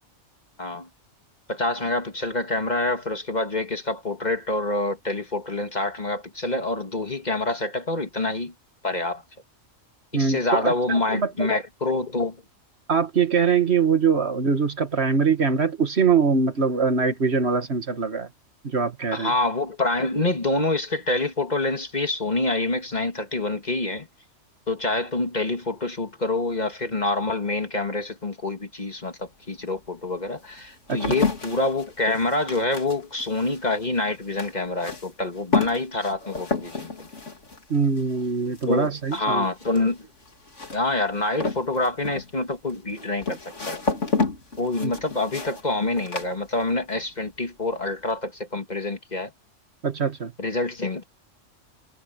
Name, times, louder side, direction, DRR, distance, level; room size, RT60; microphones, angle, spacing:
voice 1, 1.5-8.5 8.8-9.2 10.1-12.4 19.1-24.1 24.7-37.1 38.7-40.1 40.7-43.4 43.7-43.8 44.6-49.3 50.4-51.0, left 2 dB, 35° left, 1.9 m, -26 dB
voice 2, 10.1-11.5 12.9-18.3 18.6-19.3 30.9-31.2 37.7-39.5 44.8-44.9 49.8-50.3, right 5 dB, 55° right, 2.0 m, -23 dB
sound 1, 29.1-29.2 29.8-47.0 47.3-47.9, left 4 dB, 70° left, 3.2 m, -31 dB
omnidirectional pair, 1.3 m